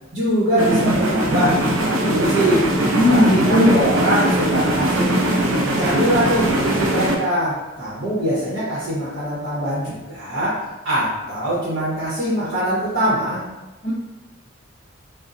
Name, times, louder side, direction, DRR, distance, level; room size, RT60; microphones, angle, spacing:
voice 1, 0.1-2.7 3.1-5.2 5.8-13.4, equal, 45° right, -9 dB, 0.9 m, -23 dB
sound 1, 0.6-7.2, right 1 dB, 85° right, 0.5 m, -20 dB
voice 2, 2.9-3.8 13.8-13.9, left 1 dB, 35° left, -7 dB, 0.4 m, -16 dB
2.9 x 2.0 x 2.5 m, 1.1 s
head